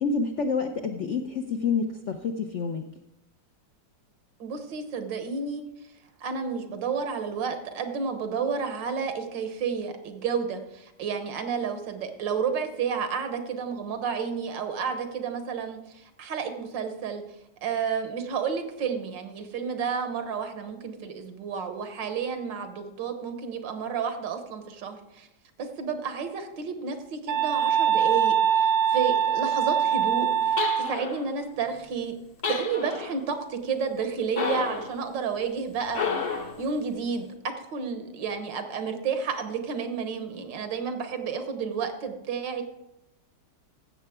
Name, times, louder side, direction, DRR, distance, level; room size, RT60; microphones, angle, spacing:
voice 1, 0.0-2.8, left 5 dB, 70° left, 5 dB, 0.7 m, -28 dB
voice 2, 4.4-5.6 6.2-17.2 17.6-25.3 25.6-32.1 32.5-36.0 36.6-42.6, right 6 dB, 85° right, 7 dB, 1.7 m, -31 dB
sound 1, 27.3-30.9, right 8 dB, 65° right, 1.0 m, -23 dB
sound 2, 30.6-31.3 32.4-33.2 34.4-34.9 35.9-36.6, left 5 dB, 50° left, 1.2 m, -30 dB
15.5 x 6.8 x 3.6 m, 0.88 s
omnidirectional pair, 1.9 m